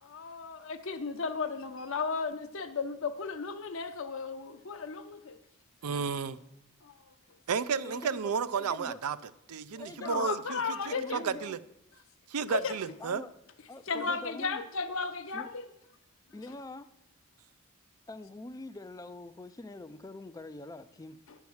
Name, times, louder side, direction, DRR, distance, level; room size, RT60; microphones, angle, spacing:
voice 1, 0.0-5.4 6.8-6.9 10.0-11.2 12.5-12.8 13.9-15.6 21.3-21.4, left 5 dB, 60° left, 0.7 m, -35 dB
voice 2, 5.8-6.4 7.5-9.2 9.5-10.6 10.9-11.6 12.3-13.2, right 6 dB, 80° right, 0.5 m, -32 dB
voice 3, 7.8-9.0 9.8-10.4 10.8-11.6 13.0-13.3 13.7-14.6 15.3-15.5 16.3-16.9 18.1-21.2, left 2 dB, 15° left, 0.3 m, -44 dB
10.5 x 4.6 x 7.1 m
head